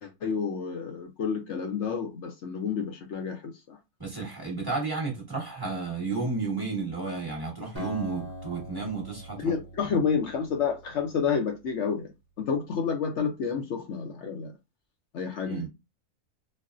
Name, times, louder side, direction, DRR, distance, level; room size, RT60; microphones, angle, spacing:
voice 1, 0.0-3.8 9.4-12.1 12.4-14.5 15.1-15.7, left 6 dB, 65° left, 0.8 m, -30 dB
voice 2, 4.0-9.5 15.5-15.7, right 4 dB, 15° right, 1.1 m, -32 dB
Acoustic guitar, 7.7-11.3, equal, 15° left, 0.9 m, -42 dB
4.2 x 2.1 x 2.5 m
omnidirectional pair, 1.6 m